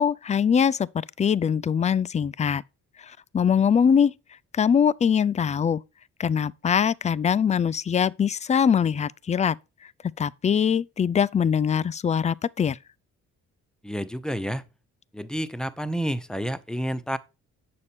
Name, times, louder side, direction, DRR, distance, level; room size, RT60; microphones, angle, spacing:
voice 1, 0.0-2.6 3.0-4.1 4.5-5.8 6.2-9.6 10.2-12.8, left 7 dB, 25° left, 0.4 m, -22 dB
voice 2, 13.8-14.6 15.1-17.2, equal, ahead, 0.8 m, -29 dB
8.5 x 6.7 x 4.2 m
cardioid pair, 90°, 30 cm